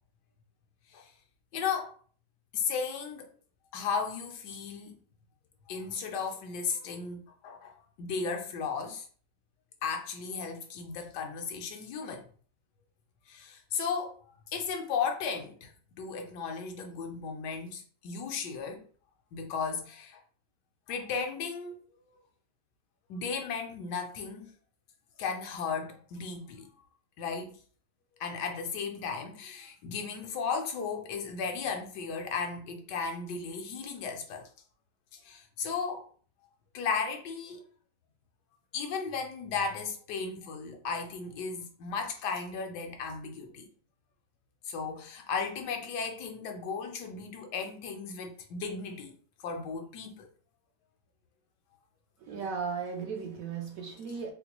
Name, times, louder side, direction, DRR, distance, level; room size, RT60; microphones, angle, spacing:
voice 1, 1.5-1.9 2.5-3.3 3.7-4.9 5.7-9.1 9.8-12.3 13.3-14.1 14.5-15.7 16.0-18.9 19.3-20.2 20.9-21.8 23.1-24.5 25.2-26.7 27.2-27.6 28.2-34.5 35.1-36.0 36.7-37.6 38.7-43.7 44.6-49.1 49.4-50.3 54.1-54.2, left 5 dB, 75° left, 1.2 m, -35 dB
voice 2, 52.3-54.3, right 5 dB, 65° right, 0.9 m, -36 dB
4.1 x 2.2 x 2.9 m
omnidirectional pair, 1.8 m